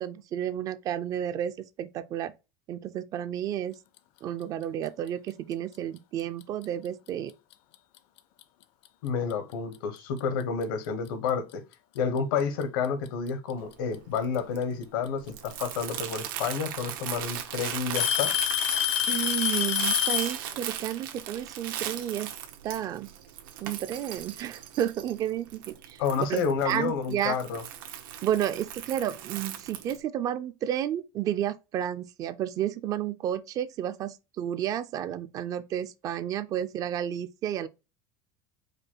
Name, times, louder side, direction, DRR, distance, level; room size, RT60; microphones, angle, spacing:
voice 1, 0.0-2.3 2.7-3.8 4.2-7.3 19.1-22.3 22.6-23.1 23.6-26.0 26.3-27.4 28.2-37.7, right 11 dB, 30° right, 0.4 m, -31 dB
Alarm / Tick-tock, 6.4-6.6 7.5-7.6 8.4-8.5 10.2-10.3 11.5-11.6 12.8-13.3 15.1-15.2 16.4-16.5 16.8-17.3 17.9-20.4, left 10 dB, 50° left, 0.4 m, -26 dB
voice 2, 9.0-11.6 11.9-18.3 26.0-27.6, left 6 dB, 80° left, 1.0 m, -30 dB
Crumpling crinkling, 13.6-30.0, right 10 dB, 90° right, 1.0 m, -39 dB
4.9 x 2.2 x 4.4 m
cardioid pair, 155°, 11 cm